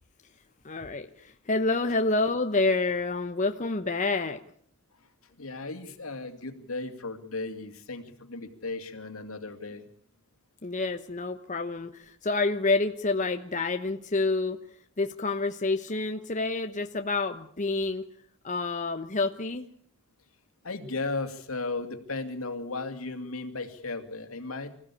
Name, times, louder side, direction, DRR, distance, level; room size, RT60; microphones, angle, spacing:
voice 1, 0.6-4.4 10.6-14.6 15.0-18.0 18.4-19.6, left 3 dB, 35° left, 6 dB, 1.1 m, -28 dB
voice 2, 5.4-9.8 20.6-24.8, left 3 dB, 75° left, 7 dB, 2.7 m, -35 dB
26.0 x 15.5 x 8.6 m, 0.62 s
head